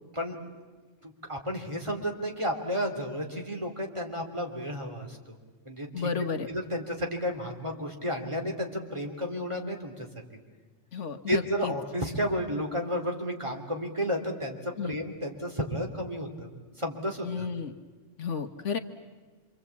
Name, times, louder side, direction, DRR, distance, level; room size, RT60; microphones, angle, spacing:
voice 1, 1.0-5.2 5.6-6.1 6.5-10.1 11.3-16.5 16.8-17.5, equal, 25° right, 2 dB, 3.2 m, -32 dB
voice 2, 5.9-6.5 10.9-11.7 14.8-15.0 17.2-17.7 18.2-18.8, left 6 dB, 70° left, 8 dB, 1.6 m, -32 dB
27.0 x 25.5 x 8.5 m, 1.3 s
omnidirectional pair, 1.3 m